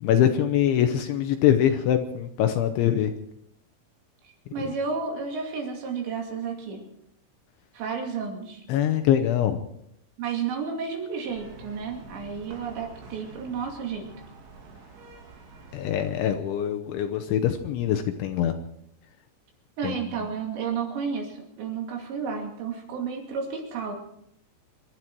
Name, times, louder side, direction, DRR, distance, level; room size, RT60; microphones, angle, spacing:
voice 1, 0.0-3.1 8.7-9.6 15.7-18.6 19.8-20.0, left 10 dB, 75° left, 7 dB, 3.0 m, -23 dB
voice 2, 4.5-6.8 7.7-8.6 10.2-14.1 19.8-24.0, right 5 dB, 60° right, 2 dB, 4.4 m, -32 dB
sound 1, 11.2-16.3, right 4 dB, 85° right, 5.6 m, -47 dB
26.0 x 12.0 x 4.6 m, 0.74 s
omnidirectional pair, 6.0 m